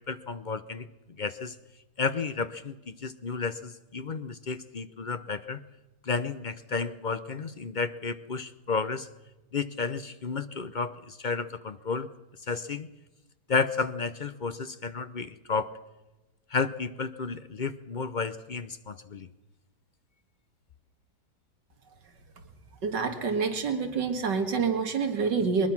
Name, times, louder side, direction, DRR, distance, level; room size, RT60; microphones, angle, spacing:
voice 1, 0.1-0.9 1.2-1.5 2.0-5.6 6.1-9.1 9.5-12.1 12.5-12.9 13.5-15.7 16.5-19.3, left 4 dB, 45° left, 12 dB, 0.6 m, -32 dB
voice 2, 22.8-25.7, right 5 dB, 85° right, 7 dB, 2.5 m, -27 dB
21.5 x 20.5 x 6.0 m, 1.0 s
omnidirectional pair, 1.8 m